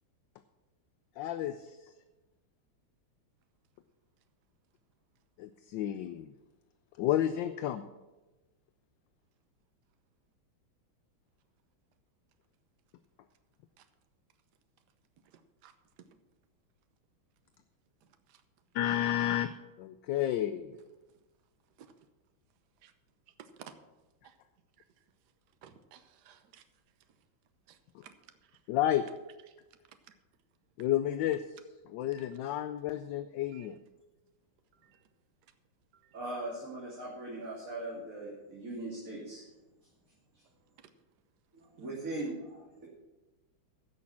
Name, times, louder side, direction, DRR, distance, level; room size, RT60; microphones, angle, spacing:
voice 1, 1.2-1.9 5.4-6.3 7.0-7.8 18.7-19.5 19.8-20.8 27.9-28.0 28.7-29.0 30.8-31.4 31.9-33.8, left 12 dB, 75° left, 1.2 m, -31 dB
voice 2, 15.2-16.2 18.0-18.4 21.8-22.1 22.8-22.9 23.3-23.7 24.2-24.4 25.0-25.1 25.6-26.6 27.1-27.2 27.7-28.6 29.5-29.6 29.9-30.2 32.1-32.3 33.5-33.7 34.7-35.1 35.4-35.5 35.9-36.2 40.8-40.9 41.8-41.9, right 8 dB, 60° right, 1.3 m, -57 dB
voice 3, 36.1-39.4 41.5-42.9, right 2 dB, 40° right, 2.8 m, -40 dB
15.5 x 6.4 x 5.8 m
omnidirectional pair, 2.2 m